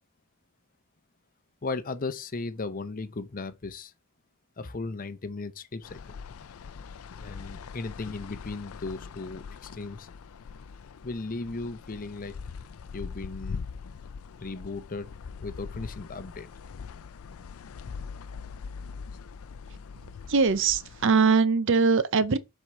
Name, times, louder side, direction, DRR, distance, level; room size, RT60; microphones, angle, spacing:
voice 1, 1.6-3.9 4.6-6.0 7.2-10.1 11.0-12.3 12.9-13.6 14.4-15.1 15.4-16.5, left 3 dB, 40° left, 0.7 m, -36 dB
sound 1, 5.8-21.1, left 5 dB, 80° left, 0.4 m, -42 dB
voice 2, 20.3-22.4, right 4 dB, 60° right, 0.6 m, -22 dB
7.7 x 4.5 x 3.7 m
head